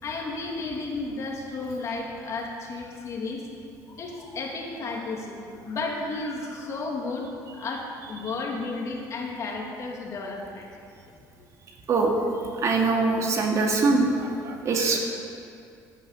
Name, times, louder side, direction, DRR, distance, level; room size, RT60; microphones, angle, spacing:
voice 1, 0.0-3.4 3.9-7.3 7.6-10.7, left 3 dB, 45° left, -1 dB, 2.6 m, -33 dB
voice 2, 12.6-15.0, right 3 dB, 45° right, 1 dB, 2.2 m, -23 dB
11.0 x 11.0 x 8.3 m, 2.4 s
cardioid pair, 130°, 7 cm